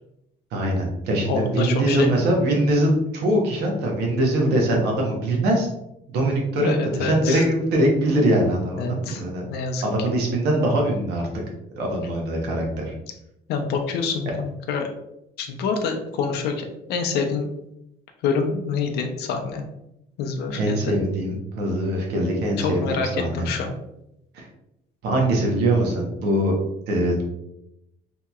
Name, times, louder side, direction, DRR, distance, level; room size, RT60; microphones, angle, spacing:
voice 1, 0.5-5.7 6.1-9.4 9.8-11.3 11.8-12.9 20.5-23.5 24.3-24.5 25.0-26.5 26.9-27.2, right 1 dB, 80° right, 0 dB, 0.9 m, -22 dB
voice 2, 1.3-2.1 6.6-7.4 8.8-9.2 9.5-9.8 13.5-14.9 15.4-17.5 18.2-19.6 20.2-20.9 22.6-23.7, left 5 dB, 75° left, 4 dB, 0.5 m, -26 dB
2.8 x 2.8 x 2.3 m, 0.84 s
cardioid pair, 110°, 17 cm